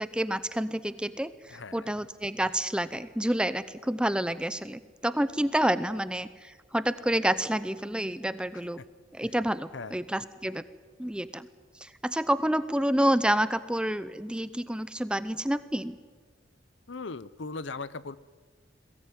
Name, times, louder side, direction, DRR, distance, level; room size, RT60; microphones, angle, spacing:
voice 1, 0.0-8.8 9.1-10.6 11.0-11.5 11.8-16.0, right 1 dB, 5° right, 14 dB, 0.6 m, -29 dB
voice 2, 1.5-2.0 9.7-9.9 16.9-18.2, left 3 dB, 75° left, 17 dB, 0.8 m, -38 dB
22.0 x 17.5 x 9.2 m, 1.5 s
head